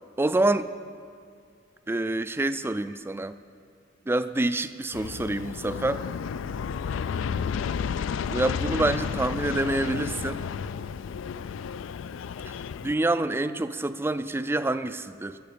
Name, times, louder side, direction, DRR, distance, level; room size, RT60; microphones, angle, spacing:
voice 1, 0.2-0.7 1.9-3.4 4.1-6.0 8.3-10.4 12.8-15.4, right 2 dB, 10° right, 12 dB, 0.3 m, -27 dB
Aircraft, 4.9-12.9, left 6 dB, 75° left, 0.3 m, -32 dB
15.5 x 7.4 x 6.8 m, 2.2 s
head